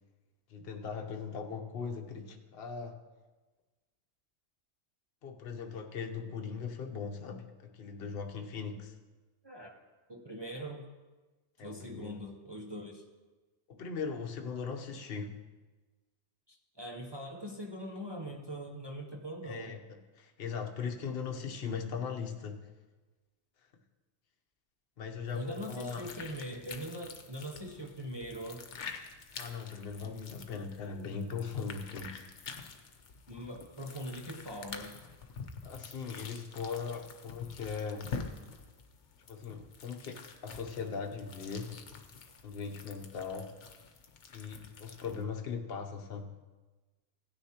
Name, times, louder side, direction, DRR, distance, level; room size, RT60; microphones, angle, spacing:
voice 1, 0.5-3.0 5.2-9.0 11.6-12.2 13.7-15.4 19.4-22.7 25.0-26.1 29.4-32.2 35.6-38.1 39.3-41.8 42.4-43.5 44.3-46.3, left 5 dB, 55° left, 3 dB, 1.1 m, -39 dB
voice 2, 10.1-10.8 11.6-13.0 16.5-19.7 25.3-28.7 33.3-35.0, equal, 25° right, 1 dB, 0.8 m, -42 dB
sound 1, 25.3-45.2, left 5 dB, 80° left, 1.2 m, -47 dB
16.5 x 9.7 x 2.9 m, 1.3 s
omnidirectional pair, 1.2 m